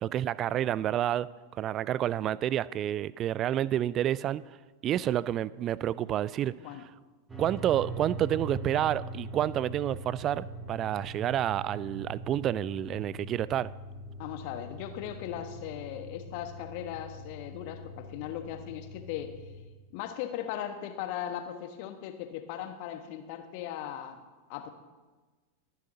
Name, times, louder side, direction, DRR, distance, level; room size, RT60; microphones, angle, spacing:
voice 1, 0.0-1.3 1.6-4.4 4.8-6.5 7.4-13.7, right 11 dB, 30° right, 20 dB, 0.3 m, -29 dB
sound 1, 7.3-19.6, right 1 dB, 15° right, 2.4 m, -42 dB
voice 2, 14.2-19.3 19.9-24.2 24.5-24.7, left 10 dB, 45° left, 7 dB, 1.3 m, -38 dB
23.0 x 9.9 x 2.8 m, 1.3 s
figure-of-eight pair, 90°, 0 cm